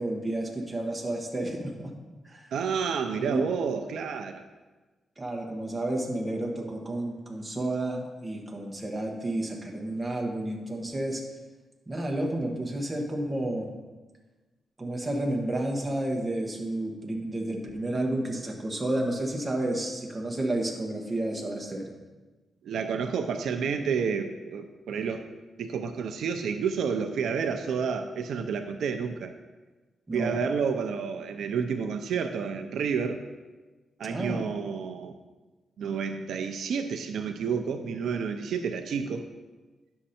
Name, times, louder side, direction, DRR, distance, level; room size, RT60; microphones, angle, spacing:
voice 1, 0.0-1.9 2.2-2.5 3.2-3.5 5.2-11.2 11.9-13.7 14.8-21.9 30.1-30.4 34.0-34.5, right 1 dB, 15° right, 0 dB, 1.3 m, -31 dB
voice 2, 2.5-4.4 22.6-25.3 25.6-29.3 30.1-33.2 34.0-35.2 35.8-39.3, right 6 dB, 80° right, 7 dB, 0.5 m, -30 dB
9.8 x 6.5 x 4.3 m, 1.2 s
wide cardioid pair, 150°, 0 cm